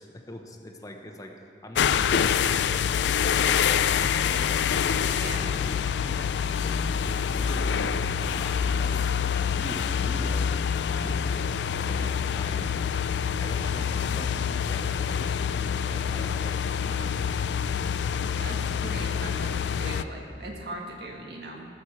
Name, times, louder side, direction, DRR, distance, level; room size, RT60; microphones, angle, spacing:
voice 1, 0.0-1.3 1.6-2.9 4.9-10.5 10.9-11.5 11.8-12.7 13.4-17.2, left 1 dB, 20° left, 3 dB, 0.9 m, -42 dB
sound 1, 1.7-20.0, left 7 dB, 75° left, 0.4 m, -26 dB
voice 2, 5.1-5.5 18.4-21.7, right 1 dB, 65° right, 0 dB, 1.9 m, -39 dB
17.0 x 6.4 x 7.3 m, 2.4 s
head